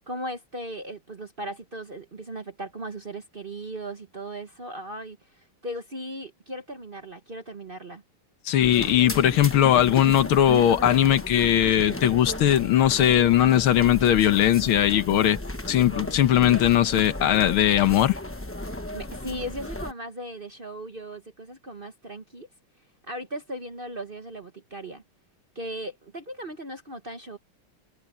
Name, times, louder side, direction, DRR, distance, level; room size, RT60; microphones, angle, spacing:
voice 1, 0.0-8.0 18.9-22.5 23.1-25.0 25.5-27.4, right 1 dB, 30° right, 1.1 m, -37 dB
voice 2, 8.5-15.4 15.7-18.2, left 11 dB, 80° left, 1.9 m, -19 dB
sound 1, 8.6-19.9, left 1 dB, 20° left, 0.4 m, -35 dB
omnidirectional pair, 2.3 m